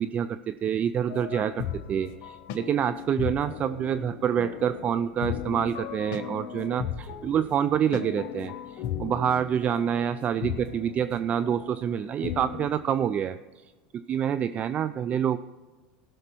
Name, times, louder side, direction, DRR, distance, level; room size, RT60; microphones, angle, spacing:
voice 1, 0.0-13.4 14.1-15.4, right 9 dB, 35° right, 12 dB, 0.4 m, -27 dB
sound 1, 1.1-12.7, left 9 dB, 60° left, 0.8 m, -37 dB
16.5 x 6.5 x 4.5 m, 1.3 s
hypercardioid pair, 95°, 4 cm